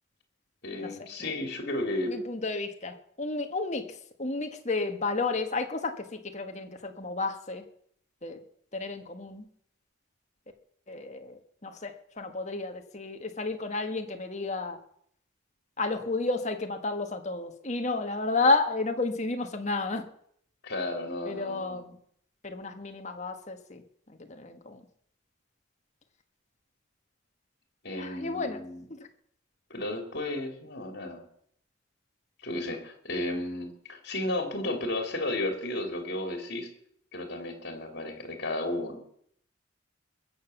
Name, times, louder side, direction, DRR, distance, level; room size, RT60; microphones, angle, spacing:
voice 1, 0.6-2.1 20.6-21.8 27.8-28.9 29.7-31.2 32.4-36.7 37.1-39.0, left 1 dB, 55° left, 5 dB, 3.3 m, -33 dB
voice 2, 2.0-7.6 8.2-8.4 8.7-9.5 10.9-14.8 15.8-20.1 21.3-22.0 22.4-23.8 24.1-24.8 28.0-28.6 28.9-29.0, left 3 dB, 35° left, 6 dB, 1.5 m, -31 dB
21.5 x 7.2 x 7.1 m, 0.67 s
head